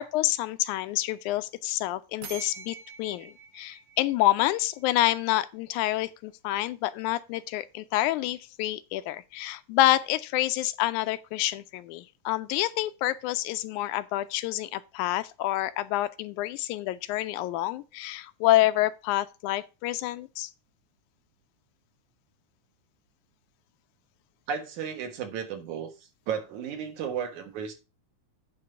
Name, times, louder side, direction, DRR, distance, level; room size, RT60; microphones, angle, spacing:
voice 1, 0.0-20.5, left 15 dB, 85° left, 2.0 m, -28 dB
sound 1, 2.2-5.0, right 7 dB, 60° right, 1.2 m, -46 dB
voice 2, 24.5-25.9 26.3-27.7, right 7 dB, 75° right, 2.9 m, -33 dB
9.2 x 3.7 x 6.8 m
omnidirectional pair, 3.5 m